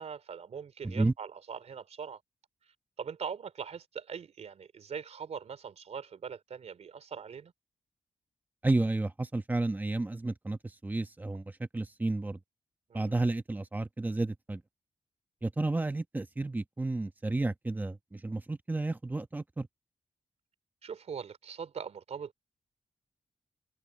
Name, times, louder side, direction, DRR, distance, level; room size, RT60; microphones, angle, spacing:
voice 1, 0.0-2.2 3.0-7.5 12.9-13.1 20.8-22.4, right 6 dB, 65° right, 3.2 m, -41 dB
voice 2, 8.6-12.4 12.9-14.6 15.4-19.7, right 2 dB, 15° right, 1.1 m, -31 dB
wide cardioid pair, 150°, 12 cm